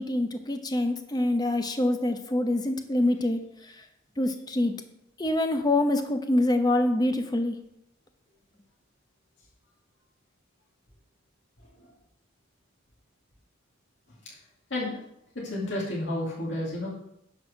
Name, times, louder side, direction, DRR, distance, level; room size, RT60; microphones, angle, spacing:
voice 1, 0.0-3.4 3.7-3.8 4.2-4.7 5.2-7.5, left 1 dB, 20° left, 7 dB, 0.7 m, -25 dB
voice 2, 15.4-16.9, left 1 dB, 65° left, -5 dB, 2.1 m, -31 dB
10.5 x 4.2 x 6.4 m, 0.80 s
head